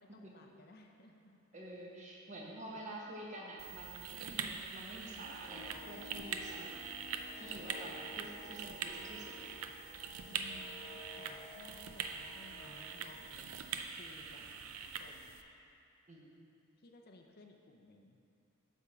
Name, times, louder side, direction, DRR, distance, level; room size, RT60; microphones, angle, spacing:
voice 1, 0.0-1.4 7.7-8.2 10.2-14.5 14.8-15.4 16.8-18.2, left 2 dB, 50° left, 3 dB, 0.6 m, -58 dB
voice 2, 1.5-6.7 7.3-9.5 16.1-16.5, right 1 dB, 35° right, -3 dB, 1.1 m, -48 dB
sound 1, 3.6-15.4, right 6 dB, 85° right, 0.5 m, -44 dB
sound 2, 5.5-13.6, left 2 dB, 55° right, 1.5 m, -54 dB
9.3 x 3.6 x 6.7 m, 2.6 s
head